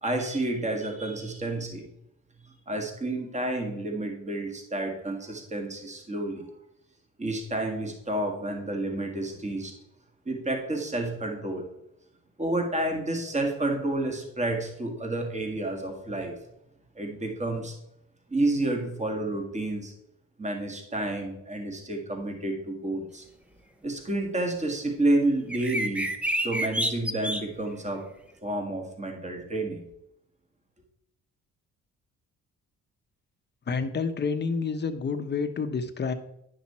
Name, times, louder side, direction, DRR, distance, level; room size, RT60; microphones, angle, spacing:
voice 1, 0.0-1.9 2.7-6.5 7.2-9.7 10.2-11.7 12.4-16.3 16.9-17.7 18.3-19.9 20.4-23.2 23.8-26.0 26.4-28.1 28.4-29.8, right 2 dB, 25° right, 3 dB, 1.8 m, -30 dB
sound 1, 25.5-27.4, equal, 5° right, 0.8 m, -28 dB
voice 2, 33.7-36.1, left 5 dB, 35° left, 8 dB, 0.9 m, -29 dB
9.9 x 5.9 x 4.3 m, 0.80 s
cardioid pair, 90°, 30 cm